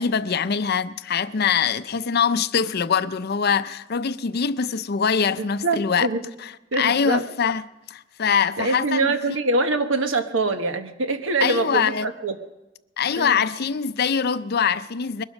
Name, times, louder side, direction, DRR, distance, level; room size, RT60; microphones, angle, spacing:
voice 1, 0.0-6.1 6.4-6.5 6.8-7.6 7.9-9.4 11.4-12.1 13.0-15.2, left 6 dB, 55° left, 0.5 m, -23 dB
voice 2, 5.4-6.2 6.7-7.2 8.6-12.3 13.2-13.4, right 3 dB, 80° right, 1.3 m, -24 dB
21.5 x 12.0 x 5.2 m
head